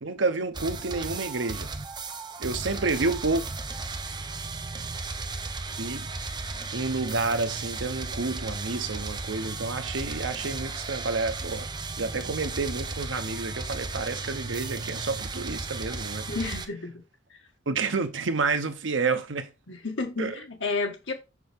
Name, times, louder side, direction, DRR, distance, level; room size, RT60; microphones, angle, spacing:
voice 1, 0.0-1.7 2.4-3.4 5.8-6.1 6.7-11.7 12.0-16.3 17.7-19.5 20.2-20.3, right 3 dB, 90° right, 0.9 m, -29 dB
sound 1, 0.5-16.7, right 3 dB, 25° right, 0.7 m, -35 dB
voice 2, 16.3-16.9 19.7-21.1, left 3 dB, 85° left, 1.7 m, -31 dB
6.0 x 5.8 x 3.5 m
head